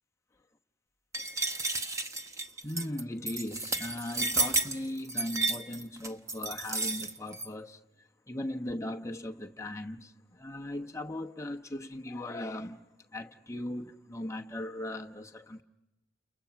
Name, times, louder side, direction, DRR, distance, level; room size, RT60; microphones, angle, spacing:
sound 1, 1.1-7.5, right 3 dB, 15° right, 0.9 m, -32 dB
voice 1, 2.6-7.8 8.3-15.6, left 1 dB, 15° left, 1.0 m, -38 dB
30.0 x 29.5 x 5.9 m
head